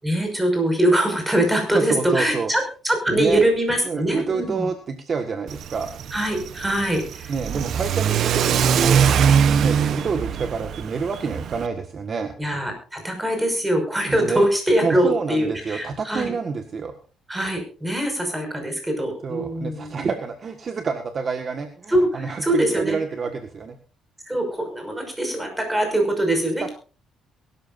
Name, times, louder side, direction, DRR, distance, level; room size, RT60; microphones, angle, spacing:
voice 1, 0.0-4.7 6.1-7.3 12.4-16.3 17.3-19.9 21.9-23.0 24.3-26.7, right 1 dB, 10° right, 4 dB, 5.8 m, -23 dB
voice 2, 1.7-2.5 3.1-3.4 3.8-5.9 7.3-12.3 14.1-14.5 14.8-16.9 19.2-23.8 26.6-26.7, right 5 dB, 40° right, 6 dB, 1.6 m, -28 dB
Car / Accelerating revving vroom, 5.5-11.7, right 7 dB, 60° right, 0.9 m, -22 dB
23.0 x 13.0 x 2.6 m, 0.37 s
cardioid pair, 120°, 0 cm